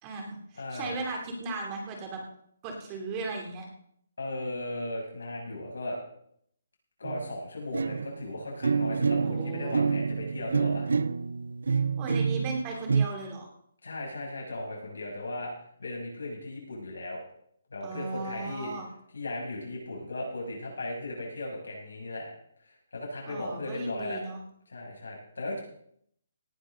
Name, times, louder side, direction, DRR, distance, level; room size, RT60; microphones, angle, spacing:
voice 1, 0.0-2.2 2.6-3.6 9.2-9.8 11.7-13.5 17.8-18.9 23.3-24.4, right 3 dB, 25° right, 1 dB, 2.9 m, -36 dB
voice 2, 0.5-1.0 4.2-6.0 7.0-10.9 13.8-15.5 15.8-17.2 17.7-18.7 19.1-22.3 22.6-24.2 24.7-25.6, left 1 dB, 85° left, -2 dB, 6.7 m, -36 dB
sound 1, 7.0-7.4 7.7-13.1, right 5 dB, 80° right, 0.5 m, -28 dB
18.0 x 11.0 x 3.9 m, 0.69 s
hypercardioid pair, 160°, 0 cm